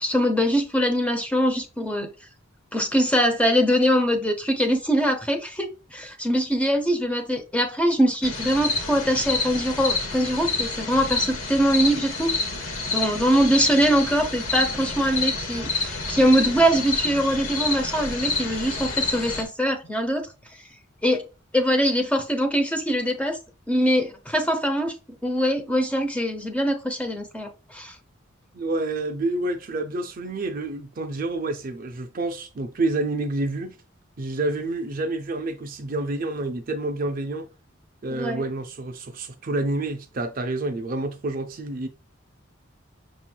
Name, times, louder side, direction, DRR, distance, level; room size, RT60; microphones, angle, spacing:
voice 1, 0.0-2.1 2.7-12.4 12.9-20.3 21.0-21.2 21.5-23.4 23.7-25.0 25.2-28.0 38.1-38.4, equal, 5° left, 0.6 m, -23 dB
sound 1, 8.2-19.4, left 3 dB, 80° left, 1.1 m, -28 dB
voice 2, 28.5-33.8 34.2-37.5 38.0-41.9, right 2 dB, 45° right, 0.5 m, -28 dB
6.1 x 3.0 x 2.3 m
head